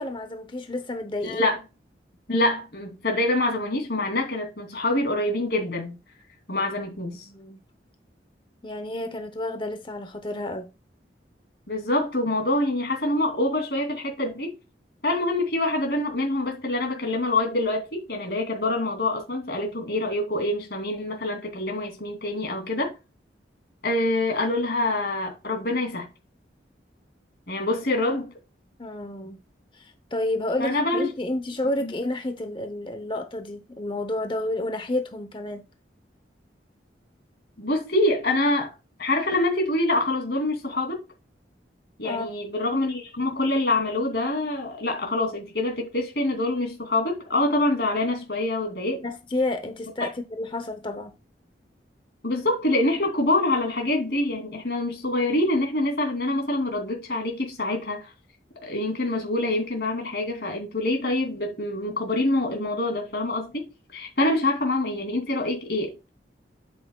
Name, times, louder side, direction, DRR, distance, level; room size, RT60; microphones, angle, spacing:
voice 1, 0.0-1.4 7.3-7.6 8.6-10.7 28.8-29.4 29.7-35.6 42.0-42.3 49.0-51.1, left 1 dB, 25° left, 0.7 m, -30 dB
voice 2, 1.2-1.6 2.3-6.0 6.5-7.2 11.7-14.5 15.0-22.9 23.8-26.1 27.5-28.3 30.6-31.1 31.8-31.9 37.6-38.7 39.0-41.0 42.0-49.0 52.2-58.1 58.6-66.0, left 2 dB, 60° left, 2.7 m, -25 dB
8.2 x 7.7 x 2.3 m
head